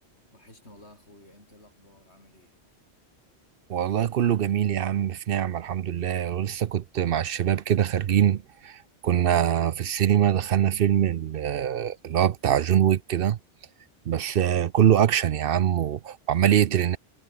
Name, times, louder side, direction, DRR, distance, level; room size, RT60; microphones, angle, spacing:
voice 1, 0.3-2.5, left 1 dB, 85° left, 8.3 m, -53 dB
voice 2, 3.7-13.4 14.1-17.0, right 10 dB, 60° right, 0.8 m, -23 dB
omnidirectional pair, 1.1 m